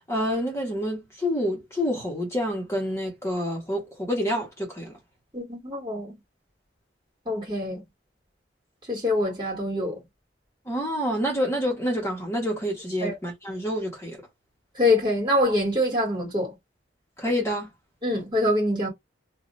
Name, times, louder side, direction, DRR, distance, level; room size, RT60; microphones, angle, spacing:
voice 1, 0.1-4.9 10.7-14.2 17.2-17.7, equal, 15° left, 1.4 m, -28 dB
voice 2, 5.3-6.2 7.3-7.8 8.9-10.0 13.0-13.2 14.8-16.5 18.0-18.9, left 1 dB, 25° right, 2.3 m, -25 dB
3.2 x 2.8 x 2.6 m
head